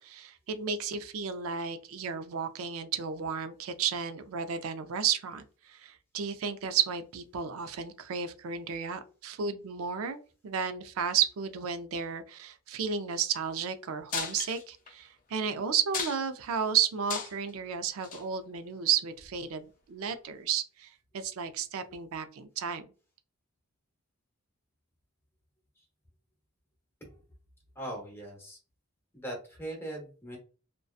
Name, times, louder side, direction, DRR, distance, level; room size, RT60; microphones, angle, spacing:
voice 1, 0.0-22.8, right 7 dB, 70° right, 10 dB, 0.4 m, -33 dB
sound 1, 14.1-14.9 15.4-15.5 15.8-16.4 16.9-17.5 18.0-18.2 19.2-19.3, left 6 dB, 40° left, 0.4 m, -35 dB
voice 2, 27.8-28.6 29.1-30.4, right 1 dB, 10° left, -1 dB, 0.9 m, -40 dB
2.6 x 2.2 x 2.3 m, 0.37 s
head